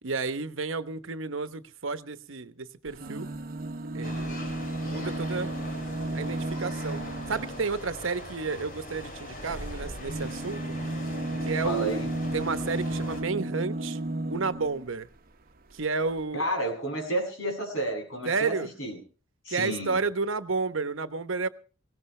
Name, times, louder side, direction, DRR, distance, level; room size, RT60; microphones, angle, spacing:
voice 1, 0.0-3.3 3.9-4.4 4.8-5.5 6.1-7.0 7.3-10.6 11.4-12.0 12.3-14.0 14.3-15.1 15.7-16.4 18.3-18.7 19.5-21.5, right 4 dB, 75° right, 1.0 m, -31 dB
sound 1, 2.9-7.7 9.4-14.9 15.8-15.9 16.1-16.2, right 1 dB, 50° right, 1.1 m, -33 dB
sound 2, 4.0-13.2, left 1 dB, 45° left, 5.4 m, -41 dB
voice 2, 11.6-12.1 16.3-19.0 19.4-20.0, right 1 dB, 80° left, 7.7 m, -31 dB
21.5 x 17.5 x 3.3 m
head